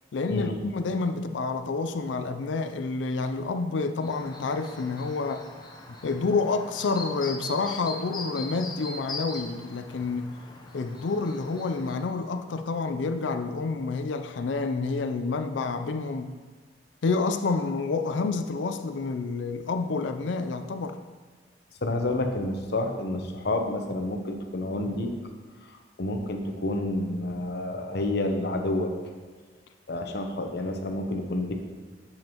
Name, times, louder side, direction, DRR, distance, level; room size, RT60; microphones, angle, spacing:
voice 1, 0.1-5.5 6.0-10.3 10.7-16.3 17.0-21.0, left 4 dB, 80° left, 9 dB, 0.4 m, -28 dB
Chirp tweet, 4.0-12.0, left 2 dB, 25° left, 0.7 m, -41 dB
voice 2, 21.8-25.1 25.6-28.9 29.9-31.5, left 1 dB, 60° left, 4 dB, 0.8 m, -29 dB
7.8 x 7.3 x 2.9 m, 1.4 s
head